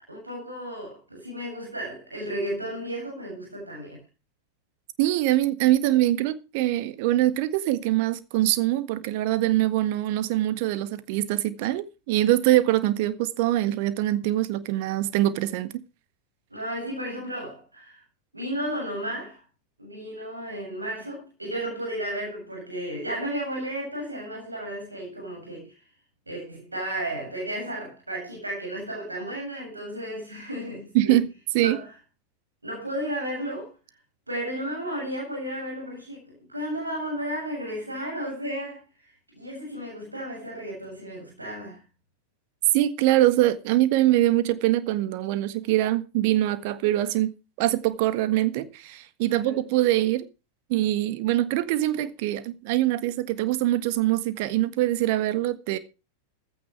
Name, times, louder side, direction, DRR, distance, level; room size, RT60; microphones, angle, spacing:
voice 1, 0.0-4.0 16.5-18.0 18.3-19.4 19.8-25.7 26.3-31.2 31.5-31.9 32.6-33.7 34.3-38.8 39.3-41.8 49.3-49.6, right 1 dB, 80° right, 7.8 m, -33 dB
voice 2, 5.0-15.8 30.9-31.3 31.5-31.8 42.7-50.3 50.7-55.8, right 15 dB, 50° right, 1.5 m, -23 dB
15.5 x 14.0 x 3.3 m
figure-of-eight pair, 90°, 0 cm